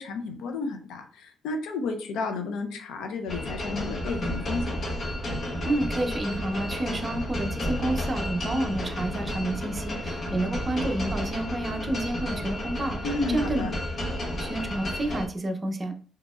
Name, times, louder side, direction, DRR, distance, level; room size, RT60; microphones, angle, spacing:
voice 1, 0.0-4.7 13.0-13.8, left 3 dB, 85° left, 4 dB, 0.6 m, -32 dB
sound 1, 3.3-15.3, left 1 dB, 50° left, 1.0 m, -32 dB
voice 2, 5.6-14.0 14.3-15.9, right 1 dB, 30° right, 4 dB, 0.6 m, -30 dB
3.8 x 2.8 x 2.4 m, 0.43 s
cardioid pair, 90°, 0 cm